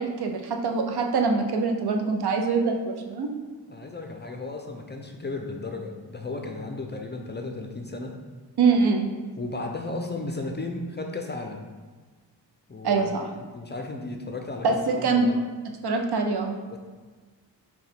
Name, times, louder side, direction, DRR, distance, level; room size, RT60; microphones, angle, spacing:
voice 1, 0.0-3.3 8.6-9.1 12.8-13.2 14.6-15.3 15.8-16.5, right 4 dB, 60° right, 3 dB, 0.6 m, -24 dB
voice 2, 3.7-8.2 9.4-11.7 12.7-13.1 13.5-15.3 16.7-16.8, left 2 dB, 25° left, 3 dB, 0.5 m, -34 dB
3.8 x 2.3 x 4.1 m, 1.4 s
cardioid pair, 45°, 44 cm